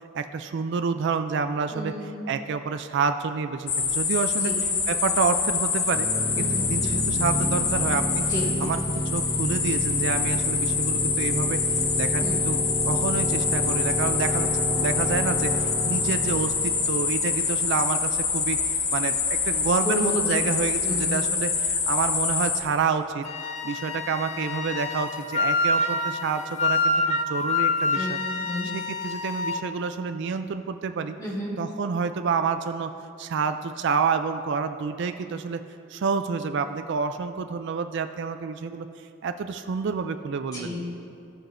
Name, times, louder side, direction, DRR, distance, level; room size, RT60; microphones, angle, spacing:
voice 1, 0.1-2.0 2.3-6.1 6.4-8.2 8.6-11.6 12.0-12.6 12.8-23.3 23.6-28.2 28.6-31.1 31.6-32.9 33.2-35.6 35.9-38.9 39.2-40.8, right 5 dB, 60° right, 9 dB, 0.4 m, -28 dB
voice 2, 1.7-2.1 4.4-4.5 6.4-6.6 8.3-8.4 12.2-12.4 19.8-20.5 20.8-21.1 28.0-28.7 31.2-31.5 40.5-41.0, left 1 dB, 20° left, -6 dB, 2.1 m, -31 dB
sound 1, 3.7-22.6, left 5 dB, 85° left, 0.9 m, -26 dB
sound 2, 5.9-17.5, equal, 50° left, 1.6 m, -30 dB
Wind instrument woodwind instrument, 23.2-29.6, left 2 dB, 35° left, 0.4 m, -27 dB
17.0 x 6.0 x 2.6 m, 2.6 s
head